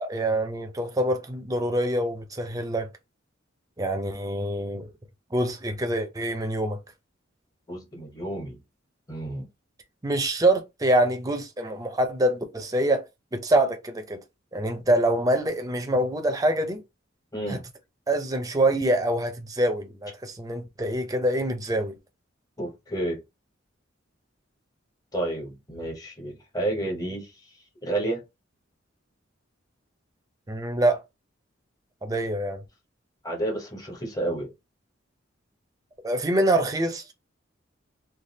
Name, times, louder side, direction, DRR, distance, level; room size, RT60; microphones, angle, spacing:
voice 1, 0.0-2.9 3.8-4.9 5.3-6.8 10.0-13.0 13.3-14.2 14.5-16.8 17.5-17.6 18.1-21.9 30.5-31.0 32.0-32.6 36.0-37.1, right 1 dB, 20° right, 0.5 m, -25 dB
voice 2, 7.7-8.6 9.1-9.5 17.3-17.6 22.6-23.2 25.1-27.3 27.8-28.2 33.2-34.5, right 1 dB, 20° left, 0.8 m, -30 dB
3.4 x 2.3 x 2.7 m
head